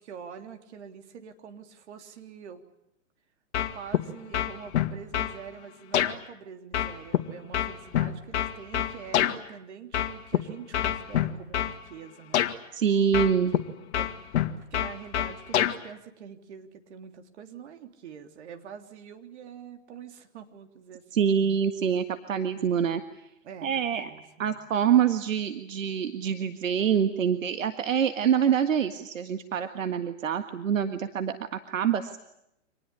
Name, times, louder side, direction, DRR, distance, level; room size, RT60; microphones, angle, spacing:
voice 1, 0.0-2.6 3.7-12.5 14.0-14.1 14.6-21.4 23.4-24.6, right 7 dB, 60° right, 6 dB, 3.5 m, -45 dB
sound 1, 3.5-4.0 4.3-5.4 5.9-6.1 6.7-9.4 9.9-10.4 10.7-11.8 12.3-12.5 13.1-13.6 13.9-15.8, left 11 dB, 60° left, 2.2 m, -26 dB
voice 2, 12.7-13.5 21.1-23.0 23.6-24.1 24.4-32.2, right 8 dB, 80° right, 8 dB, 1.8 m, -25 dB
26.0 x 19.5 x 10.0 m, 0.81 s
hypercardioid pair, 145°, 39 cm